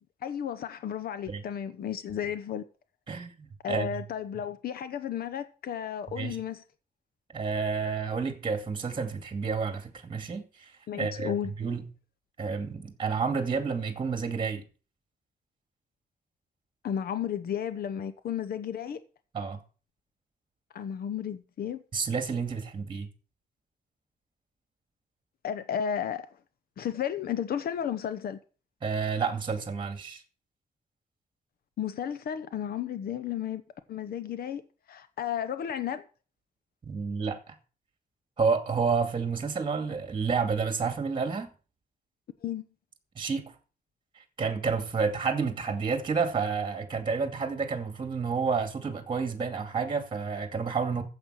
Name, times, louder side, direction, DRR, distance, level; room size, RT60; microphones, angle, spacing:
voice 1, 0.2-2.6 3.6-6.6 10.9-11.5 16.8-19.0 20.7-21.8 25.4-26.3 26.8-28.4 31.8-33.6 33.9-34.6 34.9-36.0 42.4-42.6, left 9 dB, 75° left, 0.9 m, -33 dB
voice 2, 3.1-4.0 6.2-6.4 7.3-11.9 12.4-14.6 19.3-19.6 21.9-23.1 28.8-30.2 36.8-37.5 38.4-41.5 43.2-43.5 44.2-51.0, right 5 dB, 30° right, 2.4 m, -30 dB
14.5 x 7.9 x 6.4 m
wide cardioid pair, 130°, 16 cm